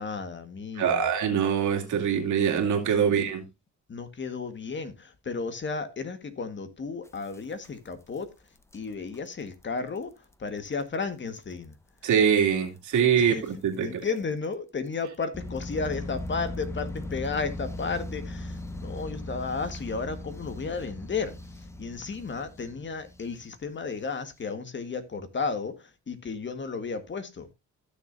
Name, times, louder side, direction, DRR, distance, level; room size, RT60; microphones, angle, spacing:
voice 1, 0.0-1.1 3.0-3.1 3.9-8.3 8.7-10.1 10.4-11.7 13.2-13.4 13.8-27.5, left 4 dB, 40° left, 1.7 m, -33 dB
voice 2, 0.8-3.4 12.0-14.0, right 7 dB, 75° right, 2.5 m, -24 dB
sound 1, 7.1-8.2 8.6-8.8 9.1-9.3 9.6-9.7 10.0-10.1 10.7-10.8 11.5-11.6 12.1-12.2 13.5-13.6 14.2-14.3 15.3-23.6, left 1 dB, 10° left, 1.0 m, -38 dB
15.5 x 6.8 x 2.6 m
cardioid pair, 90°, 30 cm